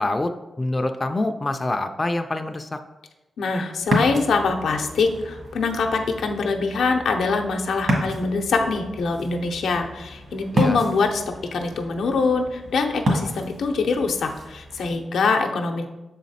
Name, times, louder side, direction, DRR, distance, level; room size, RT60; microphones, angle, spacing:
voice 1, 0.0-2.8 10.5-10.8, left 2 dB, 25° left, 6 dB, 0.4 m, -26 dB
voice 2, 3.4-15.9, left 4 dB, 85° left, 4 dB, 0.7 m, -24 dB
Ocean, 3.8-15.0, equal, 60° right, 1.7 m, -30 dB
6.5 x 4.1 x 4.1 m, 1.1 s
cardioid pair, 95°, 0 cm